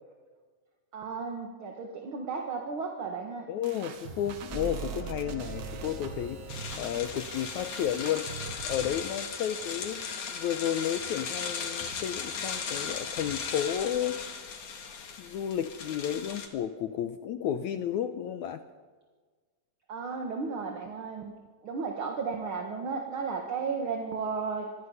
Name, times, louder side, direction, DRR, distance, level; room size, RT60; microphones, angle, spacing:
voice 1, 0.9-3.5 19.9-21.3 21.6-24.7, right 5 dB, 45° right, 2 dB, 1.8 m, -34 dB
voice 2, 3.5-6.4 6.8-8.3 8.7-14.2 15.2-18.6, left 10 dB, 75° left, 9 dB, 1.8 m, -32 dB
sound 1, 3.6-8.9, right 5 dB, 85° right, 3.6 m, -44 dB
sound 2, 4.5-9.2, right 4 dB, 25° right, 2.7 m, -42 dB
sound 3, 6.5-16.5, left 6 dB, 55° left, 3.2 m, -37 dB
26.0 x 21.0 x 5.6 m, 1.5 s
omnidirectional pair, 4.1 m